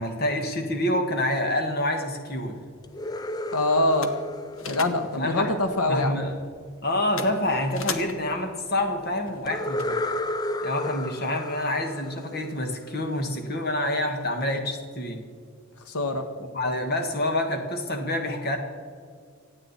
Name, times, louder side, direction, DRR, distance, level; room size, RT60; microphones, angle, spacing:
voice 1, 0.0-2.6 5.2-5.5 5.9-6.3 6.8-10.0 10.6-15.2 16.4-18.6, left 1 dB, 45° left, 4 dB, 1.6 m, -27 dB
sound 1, 2.3-10.3, left 5 dB, 65° left, 1.1 m, -41 dB
sound 2, 2.8-5.8 9.5-13.2, left 1 dB, 15° left, 0.3 m, -33 dB
voice 2, 3.5-4.1 4.7-6.2 15.9-16.3, left 1 dB, 90° left, 7 dB, 1.2 m, -24 dB
25.0 x 8.9 x 4.3 m, 2.1 s
head